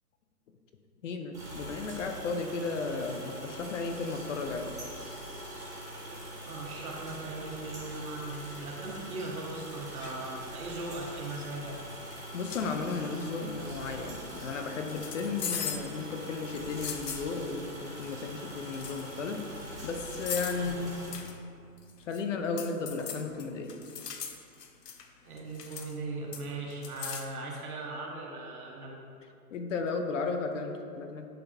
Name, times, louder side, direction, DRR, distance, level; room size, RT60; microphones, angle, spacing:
voice 1, 1.0-4.7 12.3-19.4 19.8-21.0 22.1-23.7 29.5-31.3, left 4 dB, 50° left, 5 dB, 0.7 m, -34 dB
sound 1, 1.3-21.1, right 1 dB, 5° right, 1.5 m, -43 dB
voice 2, 6.4-11.8 20.6-21.0 25.2-29.0, right 2 dB, 65° right, -2 dB, 1.6 m, -39 dB
sound 2, 10.0-10.2 10.8-11.2 12.1-12.2 12.5-12.7 14.9-15.9 16.5-17.3 18.4-18.5 18.7-19.1 20.1-20.7 21.1-21.4 21.8-22.2 22.6-25.1 25.4-26.0 26.3-27.3, left 7 dB, 90° left, 0.8 m, -39 dB
10.0 x 4.0 x 2.8 m, 2.4 s
hypercardioid pair, 145°, 48 cm